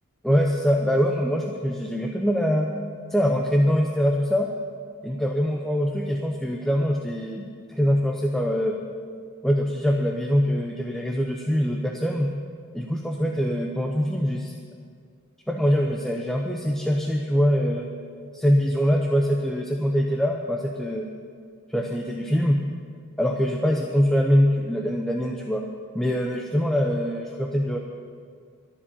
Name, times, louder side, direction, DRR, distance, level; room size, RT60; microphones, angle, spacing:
voice 1, 0.2-2.7 3.1-4.5 5.0-8.7 9.4-12.3 12.7-14.5 15.5-17.9 18.3-21.1 21.7-22.6 23.2-25.6 25.9-27.8, equal, ahead, 1 dB, 0.7 m, -23 dB
12.5 x 7.4 x 9.9 m, 2.1 s
head